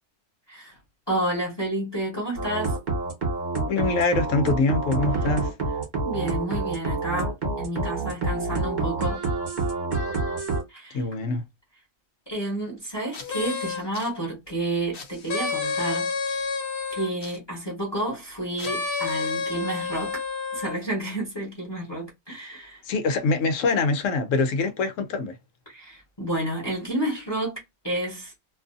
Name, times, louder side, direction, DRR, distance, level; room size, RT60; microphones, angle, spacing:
voice 1, 1.1-2.8 6.0-9.2 10.7-11.0 12.3-16.5 17.0-20.2 20.5-22.8 25.7-28.3, right 1 dB, 20° left, 1.0 m, -30 dB
sound 1, 2.4-10.6, right 3 dB, 40° right, 1.2 m, -27 dB
voice 2, 3.7-5.5 10.9-11.4 22.9-25.4, left 3 dB, 80° left, 1.0 m, -24 dB
sound 2, 13.1-14.1 14.9-17.4 18.6-20.8, left 4 dB, 55° left, 0.8 m, -29 dB
2.6 x 2.5 x 2.4 m
omnidirectional pair, 1.3 m